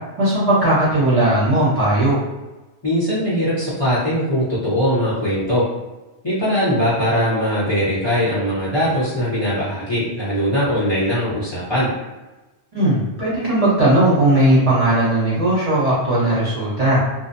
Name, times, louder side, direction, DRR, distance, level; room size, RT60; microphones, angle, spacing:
voice 1, 0.2-2.2 12.7-17.0, right 1 dB, 35° right, -9 dB, 0.8 m, -17 dB
voice 2, 2.8-5.6 6.2-11.9, equal, 25° left, -10 dB, 0.8 m, -20 dB
2.6 x 2.0 x 2.6 m, 1.1 s
omnidirectional pair, 1.1 m